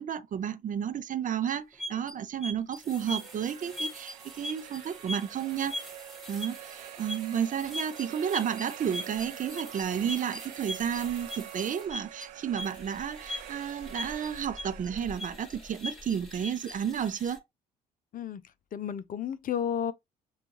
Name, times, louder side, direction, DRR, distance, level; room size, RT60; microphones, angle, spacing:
voice 1, 0.0-5.8 6.3-17.4, right 8 dB, 40° right, 0.7 m, -32 dB
sound 1, 1.5-17.4, left 1 dB, ahead, 2.0 m, -41 dB
sound 2, 2.7-16.6, right 13 dB, 80° right, 0.5 m, -46 dB
voice 2, 18.7-19.9, left 9 dB, 40° left, 0.6 m, -32 dB
6.7 x 2.4 x 3.0 m
figure-of-eight pair, 50°, 21 cm